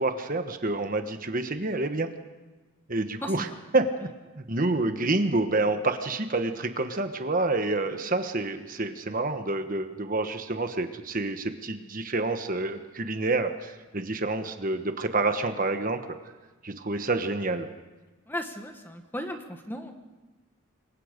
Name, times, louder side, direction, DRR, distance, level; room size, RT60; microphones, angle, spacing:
voice 1, 0.0-2.1 2.9-4.1 4.4-16.0 16.6-17.7, right 2 dB, 40° right, 7 dB, 1.2 m, -28 dB
voice 2, 18.3-19.9, left 1 dB, 10° left, 5 dB, 1.5 m, -36 dB
27.5 x 22.5 x 5.2 m, 1.2 s
head